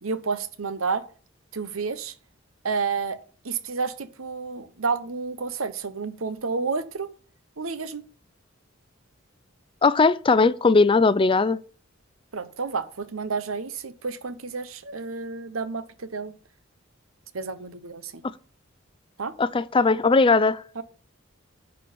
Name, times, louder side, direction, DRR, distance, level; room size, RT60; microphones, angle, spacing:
voice 1, 0.0-1.0 1.5-2.1 2.6-3.2 3.4-7.1 7.6-8.0 12.3-16.3 17.3-18.2 19.2-19.3 20.7-20.8, right 4 dB, 90° right, 1.0 m, -30 dB
voice 2, 9.8-11.6 19.4-20.6, left 4 dB, 25° left, 0.4 m, -19 dB
10.5 x 4.5 x 6.8 m
head